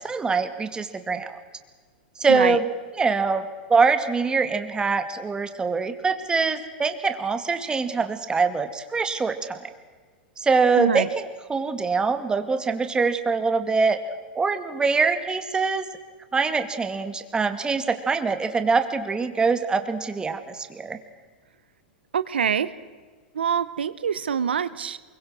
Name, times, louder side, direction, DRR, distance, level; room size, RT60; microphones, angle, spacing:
voice 1, 0.0-1.4 2.2-2.7 3.0-9.7 10.4-11.1 11.5-14.0 14.3-15.9 16.3-21.0, right 4 dB, 15° right, 8 dB, 2.1 m, -24 dB
voice 2, 2.3-2.6 10.8-11.1 22.1-22.7 23.3-25.0, right 7 dB, 90° right, 15 dB, 0.9 m, -25 dB
24.0 x 23.0 x 6.3 m, 1.5 s
hypercardioid pair, 115°, 5 cm